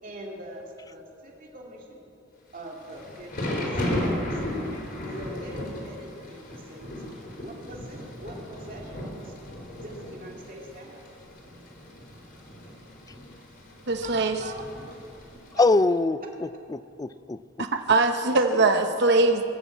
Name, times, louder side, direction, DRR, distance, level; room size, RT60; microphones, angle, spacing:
voice 1, 0.0-2.0 2.5-4.4 5.2-6.9 7.4-9.3 9.8-11.0 14.0-14.7 15.5-15.6 18.2-18.6, right 1 dB, 45° right, -1 dB, 2.7 m, -43 dB
Thunder / Rain, 2.6-15.7, left 1 dB, 50° left, 3.9 m, -35 dB
voice 2, 13.9-14.4 17.6-19.5, right 3 dB, 60° right, 6 dB, 1.0 m, -22 dB
voice 3, 15.5-17.7, left 3 dB, 20° left, 15 dB, 0.4 m, -24 dB
21.5 x 7.2 x 8.4 m, 2.5 s
head